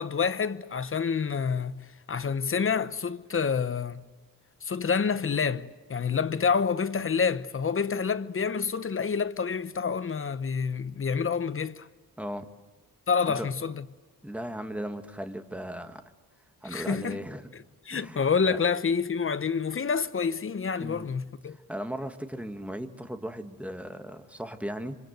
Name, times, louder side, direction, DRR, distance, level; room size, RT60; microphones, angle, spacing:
voice 1, 0.0-1.8 2.1-4.0 4.6-11.9 13.1-13.8 16.6-17.2 17.9-21.6, left 6 dB, 40° left, 0.9 m, -28 dB
voice 2, 12.2-12.5 13.3-13.5 14.2-16.0 16.6-17.5 17.9-18.2 18.5-18.6 20.8-21.1 21.5-25.0, equal, 5° right, 1.6 m, -37 dB
26.5 x 26.0 x 8.0 m
wide cardioid pair, 135°, 34 cm